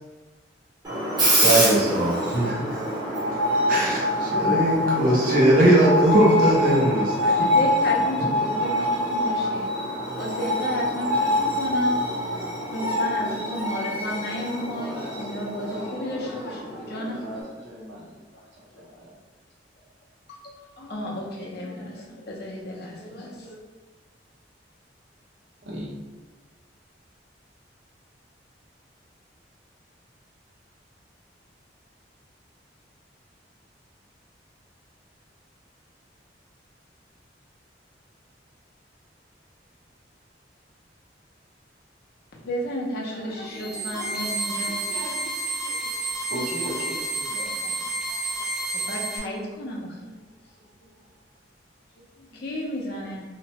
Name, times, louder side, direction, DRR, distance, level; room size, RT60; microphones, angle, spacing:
Screech, 0.8-17.4, left 1 dB, 25° right, 0.9 m, -25 dB
voice 1, 1.3-2.8 3.7-7.5, right 1 dB, 50° right, -4 dB, 0.7 m, -20 dB
voice 2, 7.2-9.9 10.2-12.0 12.6-17.3 18.3-18.4 18.7-19.0 20.3-23.6 42.4-46.0 46.6-46.9 47.4-47.7 48.1-48.5 48.7-50.1 52.0-53.2, left 1 dB, 60° left, -2 dB, 0.6 m, -33 dB
voice 3, 14.7-15.2 15.7-18.2 18.5-19.1 25.6-25.9 46.3-47.9, equal, 85° right, -5 dB, 0.9 m, -39 dB
sound 1, 43.4-49.2, right 2 dB, ahead, 0.5 m, -30 dB
2.9 x 2.1 x 2.8 m, 1.2 s
head